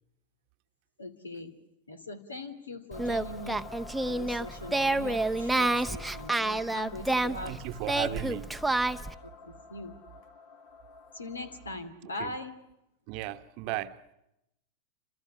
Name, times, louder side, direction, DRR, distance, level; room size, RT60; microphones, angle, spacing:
voice 1, 1.0-1.5 1.9-3.7 4.0-7.6 8.0-8.4 9.2-9.9 11.1-12.6, left 2 dB, 75° left, 2.6 m, -41 dB
sound 1, 2.9-11.7, left 5 dB, 50° left, 1.9 m, -50 dB
Singing, 2.9-9.1, right 2 dB, 5° right, 0.9 m, -29 dB
voice 2, 7.4-8.5 12.2-12.3 13.1-14.0, right 15 dB, 45° right, 1.1 m, -35 dB
30.0 x 27.0 x 6.2 m
figure-of-eight pair, 90°, 0 cm